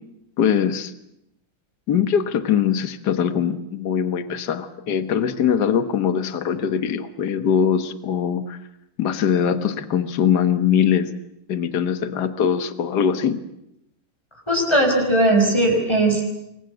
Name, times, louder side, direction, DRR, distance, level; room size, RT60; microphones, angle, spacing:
voice 1, 0.4-0.9 1.9-8.6 9.0-11.1 11.5-13.4, left 8 dB, 60° left, 11 dB, 1.8 m, -22 dB
voice 2, 14.5-16.2, right 1 dB, 15° left, 1 dB, 5.2 m, -18 dB
27.5 x 22.5 x 8.0 m, 0.81 s
omnidirectional pair, 2.0 m